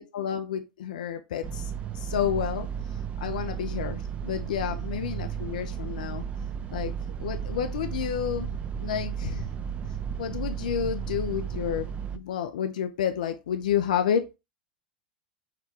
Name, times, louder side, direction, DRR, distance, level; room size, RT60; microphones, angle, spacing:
voice 1, 0.0-6.2 6.7-6.9 7.2-8.5 8.8-9.5 10.2-11.9 12.1-14.4, left 9 dB, 70° left, 0.4 m, -30 dB
sound 1, 1.4-12.2, right 8 dB, 30° right, 0.4 m, -34 dB
5.8 x 2.2 x 2.8 m
figure-of-eight pair, 90°, 4 cm